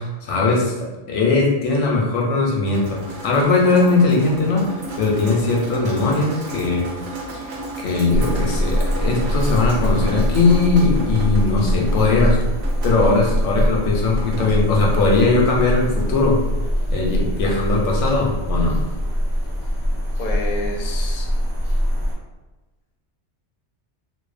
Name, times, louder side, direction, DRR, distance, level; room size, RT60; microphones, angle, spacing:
voice 1, 0.0-6.9 7.3-12.4 12.8-16.4 16.9-18.8, left 3 dB, 85° left, -1 dB, 0.9 m, -19 dB
Drip, 2.7-18.1, right 2 dB, 75° right, 0.9 m, -35 dB
sound 1, 8.1-22.1, equal, 5° left, 0.6 m, -22 dB
voice 2, 20.2-21.3, left 2 dB, 60° left, 0 dB, 0.6 m, -29 dB
2.6 x 2.0 x 2.4 m, 1.1 s
omnidirectional pair, 1.2 m